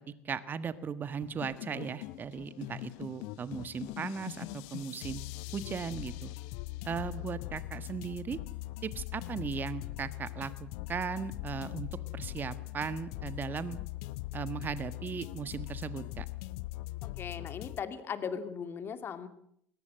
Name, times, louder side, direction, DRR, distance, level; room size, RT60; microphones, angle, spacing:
voice 1, 0.2-5.2 5.5-6.3 6.8-8.4 8.8-11.9 12.1-13.8 14.3-16.2, right 6 dB, 30° right, 14 dB, 1.5 m, -37 dB
sound 1, 1.2-17.8, left 17 dB, 60° left, 0.9 m, -41 dB
voice 2, 17.0-19.3, left 7 dB, 35° left, 10 dB, 2.5 m, -38 dB
21.0 x 20.0 x 7.6 m, 0.69 s
figure-of-eight pair, 75°, 7 cm